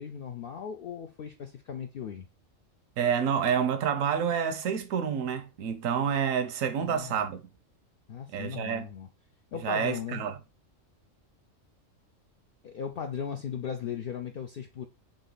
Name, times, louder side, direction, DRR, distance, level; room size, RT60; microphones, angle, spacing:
voice 1, 0.0-2.3 6.8-7.2 8.1-9.1 9.5-10.2 12.6-14.8, left 7 dB, 65° left, 0.6 m, -37 dB
voice 2, 3.0-7.4 8.3-8.8 9.6-10.4, right 7 dB, 85° right, 1.1 m, -28 dB
3.9 x 3.2 x 3.7 m
omnidirectional pair, 1.3 m